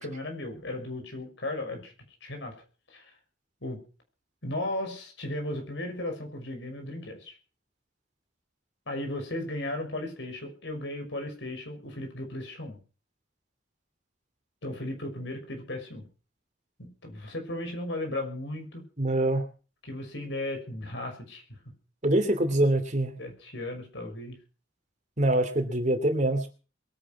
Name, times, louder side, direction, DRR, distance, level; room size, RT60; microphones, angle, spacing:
voice 1, 0.0-1.9 2.2-2.5 2.9-3.1 3.6-3.8 4.4-7.3 8.9-12.8 14.6-16.1 16.8-18.8 19.8-21.4 23.2-24.4, left 1 dB, 65° left, 4 dB, 6.0 m, -35 dB
voice 2, 19.0-19.4 22.0-23.1 25.2-26.5, right 1 dB, 40° right, 8 dB, 2.8 m, -24 dB
22.0 x 10.0 x 6.0 m, 0.37 s
head